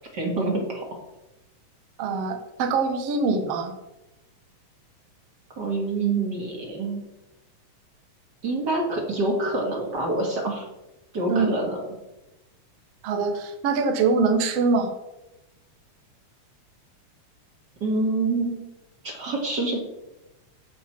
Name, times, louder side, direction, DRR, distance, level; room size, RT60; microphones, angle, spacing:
voice 1, 0.1-1.0 5.6-7.0 8.4-10.7 11.1-11.8 17.8-18.6 19.0-19.8, right 2 dB, 40° right, 0 dB, 2.1 m, -26 dB
voice 2, 2.0-3.7 11.3-11.5 13.0-14.9, right 4 dB, 60° right, 5 dB, 2.0 m, -23 dB
15.0 x 5.8 x 4.4 m, 0.95 s
omnidirectional pair, 3.5 m